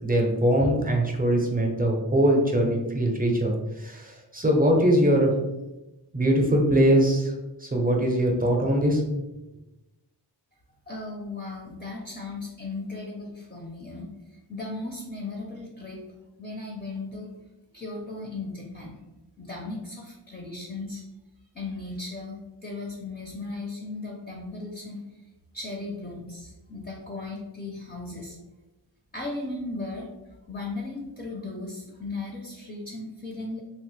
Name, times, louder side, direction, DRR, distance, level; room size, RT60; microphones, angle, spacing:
voice 1, 0.0-3.5 3.8-5.3 6.1-7.3 7.6-9.0, right 1 dB, 20° right, 0 dB, 0.6 m, -22 dB
voice 2, 10.9-14.1 14.5-16.0 16.4-17.3 17.7-19.0 19.4-21.0 21.5-25.0 25.5-28.4 29.1-30.1 30.5-33.6, left 2 dB, 20° left, -2 dB, 0.5 m, -36 dB
3.0 x 2.0 x 3.1 m, 1.0 s
wide cardioid pair, 55°, 43 cm